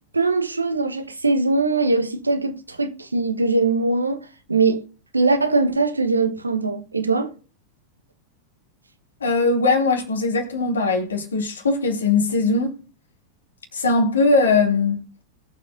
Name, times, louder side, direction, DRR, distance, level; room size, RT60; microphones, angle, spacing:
voice 1, 0.1-4.2 4.5-4.8 5.1-7.3, right 3 dB, 80° right, 1.1 m, -21 dB
voice 2, 9.2-12.8 13.7-15.0, left 3 dB, 70° left, 2.7 m, -20 dB
21.0 x 7.4 x 2.6 m
figure-of-eight pair, 90°, 0 cm